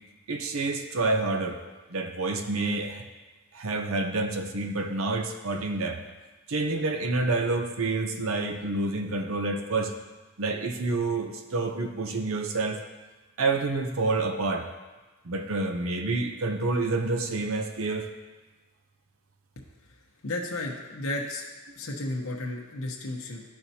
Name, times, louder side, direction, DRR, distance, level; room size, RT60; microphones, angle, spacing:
voice 1, 0.3-1.6 1.9-3.1 3.5-6.0 6.5-9.9 10.4-12.8 13.4-14.7 15.2-18.1, right 3 dB, 70° right, 5 dB, 0.7 m, -28 dB
voice 2, 20.2-21.5 21.8-23.4, left 2 dB, 75° left, -1 dB, 0.9 m, -33 dB
12.0 x 4.4 x 2.8 m, 1.2 s
head